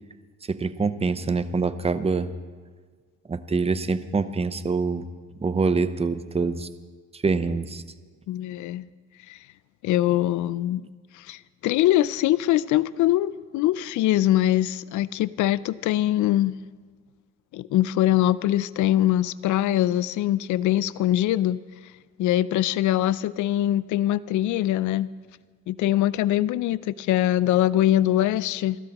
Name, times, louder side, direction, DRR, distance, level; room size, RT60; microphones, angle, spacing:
voice 1, 0.5-2.3 3.3-5.0 5.4-6.7 7.1-7.8, right 4 dB, 20° right, 0.7 m, -25 dB
voice 2, 8.3-8.9 9.3-9.4 9.8-10.8 11.1-16.6 17.5-21.6 22.2-25.1 25.7-28.8, left 13 dB, 75° left, 0.5 m, -23 dB
27.5 x 12.5 x 3.0 m
cardioid pair, 90°, 30 cm